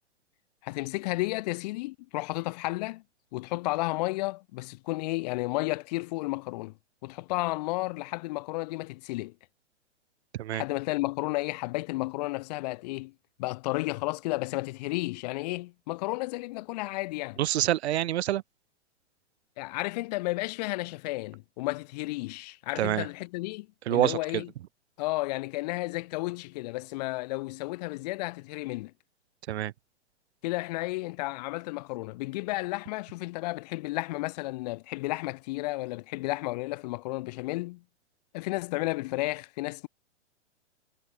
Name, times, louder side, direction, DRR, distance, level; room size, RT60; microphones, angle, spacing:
voice 1, 0.6-3.0 3.3-6.7 7.0-9.3 10.5-13.1 13.4-17.4 19.6-24.5 25.0-28.9 30.4-37.8 38.3-39.9, left 21 dB, 35° left, 0.6 m, -32 dB
voice 2, 17.4-18.4 22.8-23.0 23.9-24.2 29.5-29.7, right 13 dB, 65° right, 0.5 m, -26 dB
hypercardioid pair, 115°, 36 cm